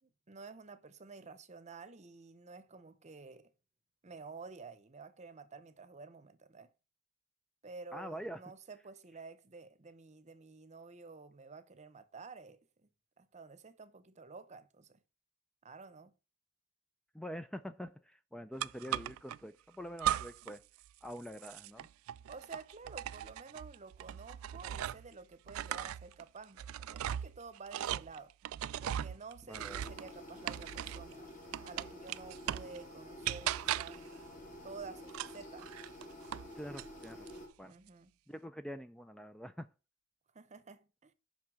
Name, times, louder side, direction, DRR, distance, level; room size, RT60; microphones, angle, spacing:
voice 1, 0.0-3.5 4.0-6.7 7.6-12.6 13.2-15.0 15.6-16.1 22.3-28.3 28.8-31.3 31.6-34.0 34.6-35.7 37.6-38.1 40.3-41.1, right 4 dB, 35° right, 0.8 m, -51 dB
voice 2, 7.9-8.4 17.1-20.7 21.0-21.9 29.5-29.8 36.5-37.3 37.6-37.7 38.3-39.7, equal, 5° left, 0.4 m, -45 dB
sound 1, 18.6-19.4 20.0-20.6 20.9-25.1 25.5-31.1 31.5-32.8 33.2-34.1 35.1-36.5 36.8-37.4, right 11 dB, 85° right, 0.3 m, -38 dB
sound 2, 29.5-37.5, left 1 dB, 40° left, 2.0 m, -50 dB
6.1 x 5.6 x 6.3 m
head